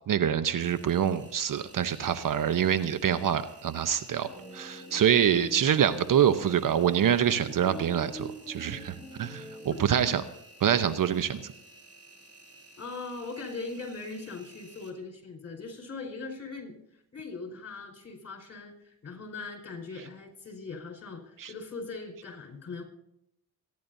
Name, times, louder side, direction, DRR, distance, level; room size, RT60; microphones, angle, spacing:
voice 1, 0.1-4.3 4.5-10.2 10.6-11.5 21.4-21.5, right 9 dB, 55° right, 12 dB, 0.9 m, -26 dB
Engine, 0.6-14.9, right 2 dB, 35° right, 3.2 m, -54 dB
sound 1, 4.1-10.2, right 1 dB, 15° right, 5.4 m, -45 dB
voice 2, 9.7-10.2 12.8-16.8 17.1-22.8, left 3 dB, 40° left, 2 dB, 4.9 m, -40 dB
27.0 x 10.5 x 2.7 m, 0.82 s
cardioid pair, 70°, 39 cm